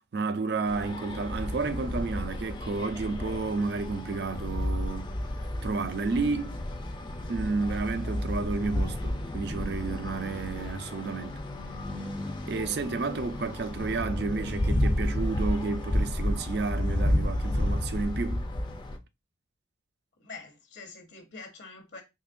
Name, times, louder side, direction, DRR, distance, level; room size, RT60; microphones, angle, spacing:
voice 1, 0.1-5.1 5.6-6.6 7.3-11.4 12.4-18.4, right 4 dB, 55° right, 0.5 m, -31 dB
sound 1, 0.7-19.0, left 1 dB, 25° left, 0.4 m, -31 dB
voice 2, 20.2-22.0, left 4 dB, 65° left, 0.8 m, -45 dB
3.8 x 2.9 x 2.5 m
head